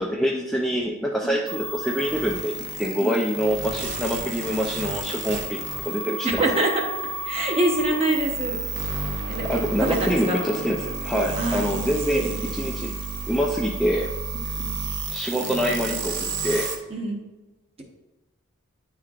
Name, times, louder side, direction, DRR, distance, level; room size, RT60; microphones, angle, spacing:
voice 1, 0.0-5.6 5.9-6.4 9.4-12.9 13.3-14.1 15.1-16.2 16.4-16.7, equal, ahead, -2 dB, 0.3 m, -25 dB
sound 1, 1.5-16.8, right 3 dB, 55° right, 0.7 m, -31 dB
voice 2, 6.2-6.8 7.2-8.6 8.9-9.0 9.3-10.4 11.4-12.8 14.6-14.8 16.9-17.2, right 1 dB, 30° right, 1 dB, 0.9 m, -26 dB
9.6 x 4.4 x 2.5 m, 1.1 s
head